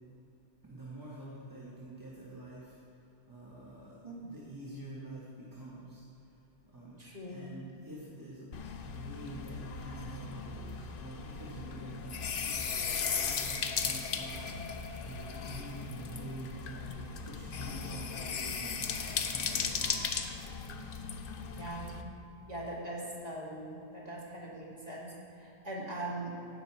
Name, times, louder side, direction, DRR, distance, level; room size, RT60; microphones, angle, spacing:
voice 1, 0.6-2.8 3.3-3.9 4.2-6.0 6.7-7.0 7.3-8.5 8.8-14.7 15.0-20.2, right 1 dB, 20° right, -7 dB, 1.4 m, -47 dB
voice 2, 7.0-7.5 21.6-22.0 22.5-26.3, right 1 dB, 35° right, -5 dB, 2.2 m, -41 dB
sound 1, 8.5-22.0, left 5 dB, 60° left, 0.8 m, -37 dB
16.0 x 5.8 x 4.6 m, 2.9 s
omnidirectional pair, 1.1 m